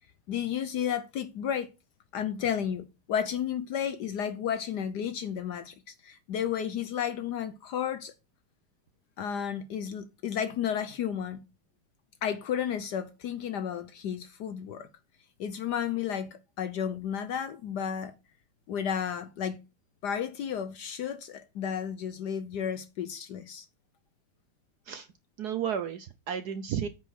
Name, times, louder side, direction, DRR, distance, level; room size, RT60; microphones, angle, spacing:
voice 1, 0.3-1.7 2.1-8.1 9.2-11.4 12.2-14.9 15.4-16.3 16.6-18.2 18.7-19.6 20.0-23.7, left 8 dB, 65° left, 1.1 m, -32 dB
voice 2, 25.4-26.9, right 8 dB, 65° right, 1.0 m, -32 dB
8.9 x 5.1 x 5.8 m
omnidirectional pair, 2.3 m